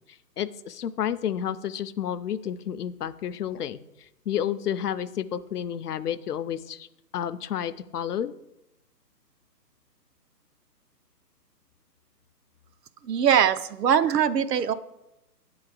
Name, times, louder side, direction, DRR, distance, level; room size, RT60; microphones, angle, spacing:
voice 1, 0.4-3.8 4.3-6.9 7.1-8.3, left 9 dB, 70° left, 14 dB, 0.6 m, -30 dB
voice 2, 13.1-14.7, right 8 dB, 75° right, 13 dB, 0.6 m, -22 dB
7.7 x 3.9 x 6.2 m, 0.89 s
hypercardioid pair, 165°, 49 cm